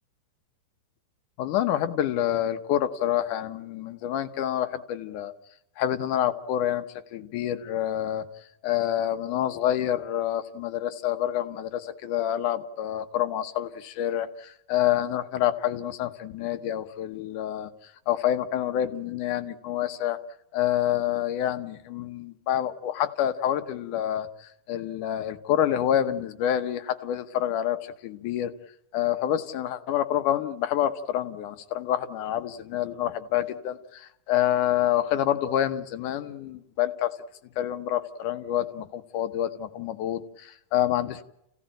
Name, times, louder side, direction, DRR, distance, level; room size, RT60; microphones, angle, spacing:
voice 1, 1.4-5.3 5.8-6.9 7.1-8.3 8.6-17.7 18.1-20.2 20.5-28.5 28.9-37.2 37.6-41.2, left 11 dB, 70° left, 10 dB, 2.5 m, -27 dB
30.0 x 16.0 x 8.9 m, 0.83 s
omnidirectional pair, 4.0 m